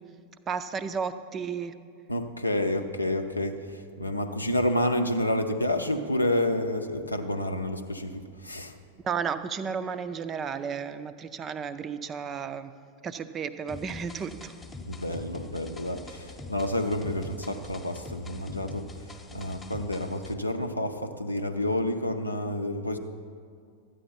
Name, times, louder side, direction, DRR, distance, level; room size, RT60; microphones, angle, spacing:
voice 1, 0.5-1.7 9.0-12.7 13.0-14.5, right 6 dB, 25° right, 12 dB, 0.4 m, -33 dB
voice 2, 2.1-8.8 14.9-18.9 19.3-23.0, left 1 dB, 85° left, 6 dB, 0.6 m, -29 dB
sound 1, 13.7-20.3, left 2 dB, 10° left, 0.8 m, -44 dB
12.5 x 9.1 x 4.1 m, 2.3 s
figure-of-eight pair, 90°, 0 cm